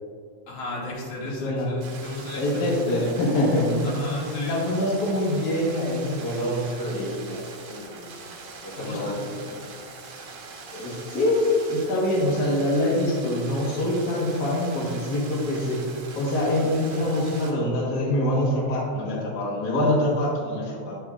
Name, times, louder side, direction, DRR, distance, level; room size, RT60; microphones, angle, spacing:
voice 1, 0.5-2.6 3.8-4.6 8.8-9.2, left 2 dB, 75° left, -4 dB, 2.7 m, -33 dB
sound 1, 1.8-17.5, right 4 dB, 70° right, 2.1 m, -42 dB
voice 2, 2.3-3.8 4.4-7.4 7.7-8.1 8.6-9.3 10.7-21.0, left 1 dB, 45° left, -4 dB, 1.4 m, -25 dB
8.1 x 7.1 x 2.4 m, 2.2 s
omnidirectional pair, 3.3 m